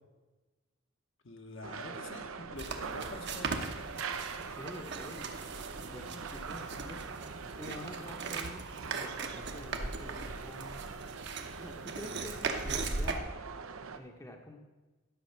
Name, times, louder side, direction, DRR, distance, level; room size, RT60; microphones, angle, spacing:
voice 1, 1.2-4.4, left 2 dB, 65° left, 4 dB, 1.2 m, -47 dB
sound 1, 1.6-14.0, right 5 dB, 80° right, 0.7 m, -43 dB
sound 2, 2.6-13.2, right 4 dB, 55° right, 1.0 m, -39 dB
voice 2, 4.3-5.6 5.9-10.8 11.6-13.2 13.9-14.6, left 1 dB, 15° left, 3 dB, 0.8 m, -48 dB
11.0 x 6.4 x 5.8 m, 1.2 s
head